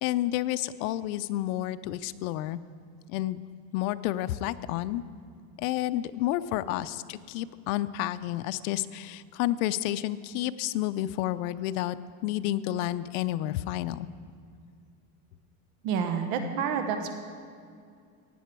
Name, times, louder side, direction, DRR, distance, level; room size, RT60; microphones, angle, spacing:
voice 1, 0.0-2.6 3.1-3.4 3.7-5.0 5.6-12.0 12.2-14.1, left 14 dB, 85° left, 13 dB, 0.6 m, -30 dB
voice 2, 15.8-17.1, right 6 dB, 80° right, 6 dB, 1.2 m, -29 dB
16.5 x 9.4 x 4.5 m, 2.3 s
cardioid pair, 150°, 42 cm